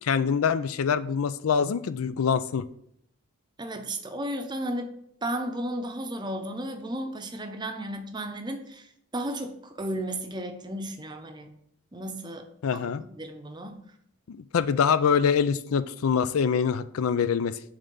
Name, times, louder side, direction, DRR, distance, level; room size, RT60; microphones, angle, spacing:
voice 1, 0.0-2.7 12.6-13.0 14.3-17.7, left 6 dB, 90° left, 14 dB, 0.4 m, -25 dB
voice 2, 3.6-4.9 5.2-11.5 11.9-12.5 12.7-13.8, right 1 dB, 20° right, 6 dB, 0.6 m, -34 dB
7.4 x 3.4 x 5.3 m, 0.70 s
head